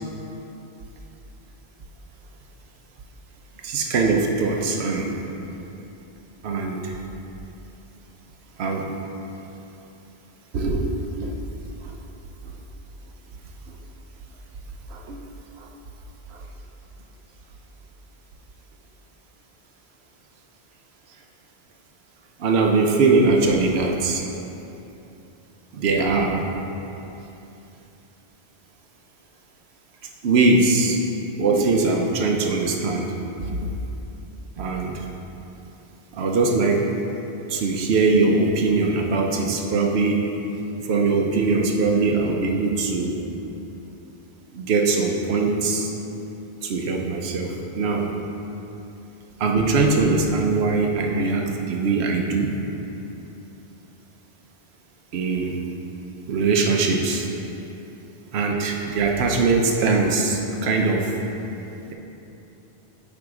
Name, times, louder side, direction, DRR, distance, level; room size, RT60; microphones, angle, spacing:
voice 1, 3.6-5.1 6.4-7.0 8.6-8.9 10.5-10.9 11.2-11.3 11.8-11.9 14.9-15.2 15.6-15.7 22.4-24.3 25.7-26.4 30.2-31.0 31.4-33.1 34.6-34.9 36.1-36.9 37.5-40.2 40.8-43.2 44.5-45.9 46.6-48.1 49.4-52.5 55.1-55.6 56.3-57.3 58.3-61.1, right 3 dB, 80° right, 2 dB, 1.0 m, -21 dB
8.8 x 3.6 x 4.8 m, 2.9 s
omnidirectional pair, 1.1 m